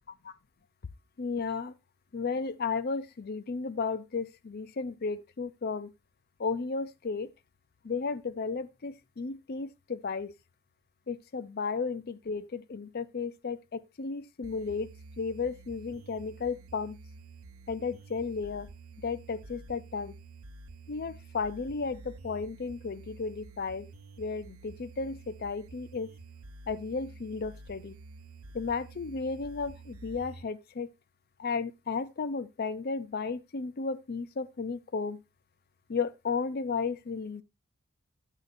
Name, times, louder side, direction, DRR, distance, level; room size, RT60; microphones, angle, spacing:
voice 1, 1.2-1.7 2.1-5.9 6.4-7.3 7.8-10.3 11.1-14.9 15.2-17.0 17.7-18.7 19.0-20.1 20.9-23.9 24.2-26.1 26.7-28.0 28.5-30.9 31.4-35.2 35.9-37.4, left 4 dB, 45° left, 0.5 m, -34 dB
sound 1, 14.4-30.4, right 3 dB, 80° right, 0.7 m, -49 dB
12.0 x 8.1 x 2.6 m
head